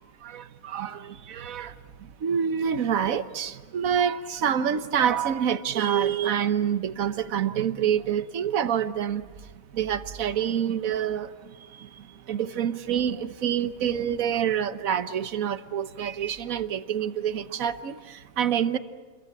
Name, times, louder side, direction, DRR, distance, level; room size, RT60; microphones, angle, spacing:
voice 1, 0.2-1.7 2.2-9.2 9.7-11.3 12.3-18.8, right 8 dB, 70° right, 12 dB, 1.4 m, -27 dB
28.5 x 22.5 x 8.8 m, 1.4 s
omnidirectional pair, 1.5 m